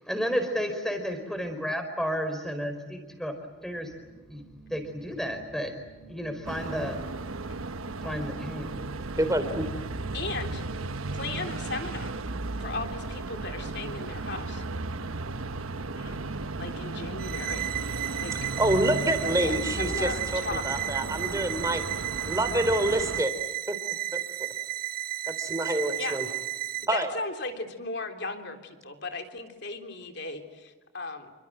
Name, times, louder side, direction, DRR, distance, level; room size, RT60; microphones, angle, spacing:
voice 1, 0.0-3.3 3.6-3.9 4.3-4.4 4.7-5.7 6.1-7.0 8.0-8.8, equal, ahead, 7 dB, 4.6 m, -32 dB
sound 1, 3.1-21.2, right 4 dB, 35° left, 4.8 m, -51 dB
sound 2, 6.5-23.2, right 3 dB, 85° right, 1.2 m, -35 dB
voice 2, 9.2-9.7 18.5-21.8 22.3-23.3 23.7-23.8 25.4-26.2 26.9-27.1, right 1 dB, 15° right, 9 dB, 3.3 m, -27 dB
voice 3, 10.1-10.6 11.1-12.1 12.6-14.6 16.0-16.2 16.6-17.9 18.2-18.5 19.2-20.8 26.0-26.2 26.8-31.3, left 3 dB, 55° left, 5 dB, 3.6 m, -37 dB
sound 3, 17.2-26.9, right 15 dB, 45° right, 1.7 m, -33 dB
28.5 x 25.0 x 7.9 m, 1.3 s
head